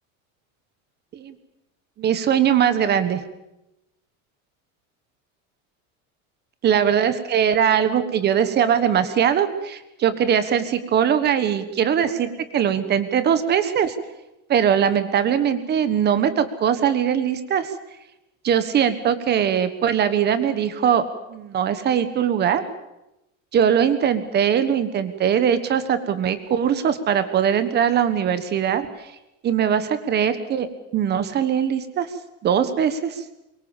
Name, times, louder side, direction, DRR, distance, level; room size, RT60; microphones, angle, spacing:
voice 1, 2.0-3.2 6.6-13.9 14.5-17.7 18.4-21.0 21.3-22.6 23.5-29.1 29.4-30.7 30.9-32.1 32.4-33.2, right 8 dB, 25° right, 11 dB, 1.4 m, -21 dB
24.0 x 23.0 x 7.2 m, 0.91 s
cardioid pair, 170°, 38 cm